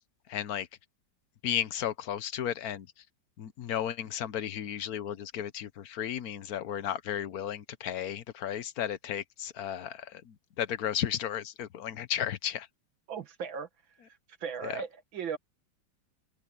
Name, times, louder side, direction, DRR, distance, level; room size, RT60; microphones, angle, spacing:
voice 1, 0.3-0.7 1.4-2.9 3.4-12.7 14.6-14.8, left 10 dB, 60° left, 1.2 m, -34 dB
voice 2, 13.1-13.7 14.4-15.4, right 6 dB, 85° right, 2.4 m, -36 dB
open air
omnidirectional pair, 2.1 m